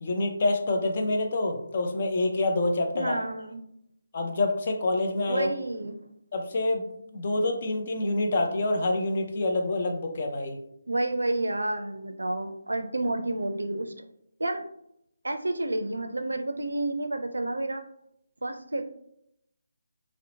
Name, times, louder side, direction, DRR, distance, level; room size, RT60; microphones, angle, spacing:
voice 1, 0.0-3.2 4.1-5.5 6.3-10.6, left 2 dB, 45° left, 3 dB, 0.5 m, -27 dB
voice 2, 2.9-3.6 5.3-6.0 10.9-14.0 14.4-14.6 15.2-17.8 18.4-18.8, right 2 dB, 90° right, 6 dB, 0.4 m, -30 dB
2.8 x 2.0 x 2.8 m, 0.74 s
figure-of-eight pair, 160°, 0 cm